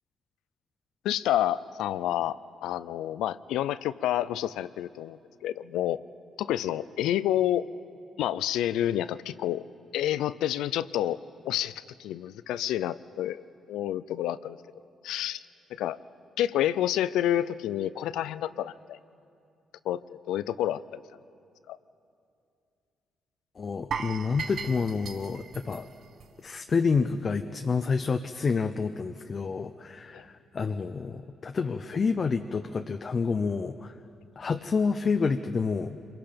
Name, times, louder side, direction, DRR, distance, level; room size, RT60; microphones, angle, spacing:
voice 1, 1.0-6.0 6.4-7.7 8.2-9.6 9.9-11.2 11.4-14.6 15.0-15.4 15.8-16.0 16.4-19.0 19.8-21.0 21.7-21.8 30.1-30.2, left 12 dB, 90° left, 16 dB, 0.5 m, -29 dB
voice 2, 23.6-25.9 26.4-33.9 34.4-36.0, left 5 dB, 40° left, 7 dB, 0.7 m, -28 dB
sound 1, 23.9-26.9 27.2-27.4 27.8-27.9, right 6 dB, 55° right, 1.0 m, -38 dB
26.0 x 22.5 x 5.2 m, 2.5 s
cardioid pair, 90°, 0 cm